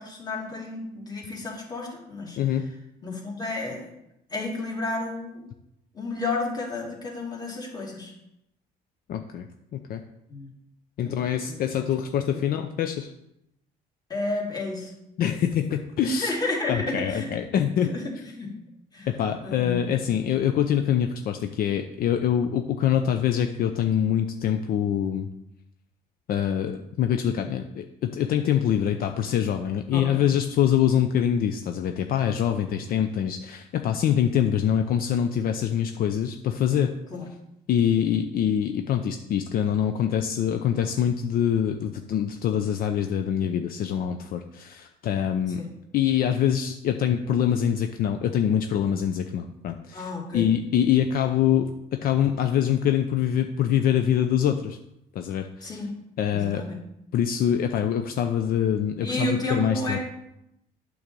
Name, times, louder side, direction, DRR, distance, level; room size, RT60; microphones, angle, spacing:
voice 1, 0.0-2.4 3.0-3.9 4.3-5.5 5.9-8.1 10.3-10.5 11.0-11.9 12.3-12.4 14.1-14.9 16.0-17.4 17.8-18.6 18.9-19.1 19.4-19.8 29.9-30.2 37.1-37.2 45.6-45.7 49.9-50.5 55.6-56.0 56.3-56.8 59.0-60.0, left 2 dB, 25° left, -1 dB, 2.5 m, -31 dB
voice 2, 9.1-9.5 9.7-10.0 11.0-13.1 15.2-16.3 16.7-17.9 19.1-25.3 26.3-36.9 37.7-45.6 45.9-54.8 55.1-55.8 56.2-56.7 57.1-60.0, left 9 dB, 60° left, 6 dB, 0.6 m, -24 dB
8.6 x 4.0 x 6.9 m, 0.82 s
cardioid pair, 110°, 17 cm